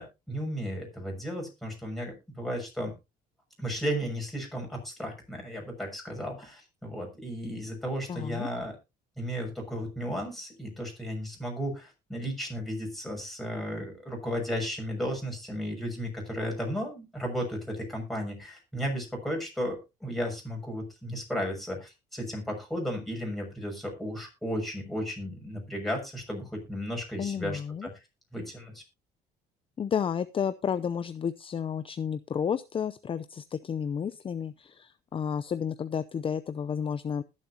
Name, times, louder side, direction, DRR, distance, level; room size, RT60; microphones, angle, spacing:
voice 1, 0.0-2.9 3.6-8.7 9.2-27.9 28.3-28.8, equal, ahead, 0 dB, 6.5 m, -34 dB
voice 2, 8.1-8.5 27.2-27.9 29.8-37.2, left 7 dB, 30° left, 13 dB, 0.6 m, -31 dB
20.5 x 7.5 x 2.8 m, 0.26 s
cardioid pair, 110°, 17 cm